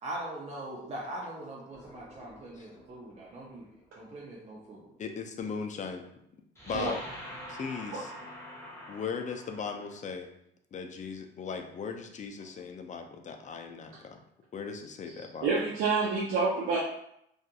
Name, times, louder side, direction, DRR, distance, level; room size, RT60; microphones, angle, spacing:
voice 1, 0.0-3.7 4.0-4.9 15.1-15.3, right 1 dB, 35° right, -5 dB, 0.5 m, -41 dB
sound 1, 1.7-3.6 6.6-10.0, equal, 15° left, 0.9 m, -46 dB
voice 2, 5.0-6.0 6.7-7.0 7.5-8.1 8.9-10.3 10.7-14.2 14.5-15.5, left 5 dB, 40° left, 5 dB, 0.4 m, -38 dB
voice 3, 15.4-16.8, right 4 dB, 85° right, -4 dB, 0.5 m, -27 dB
2.7 x 2.4 x 2.3 m, 0.75 s
cardioid pair, 90°, 20 cm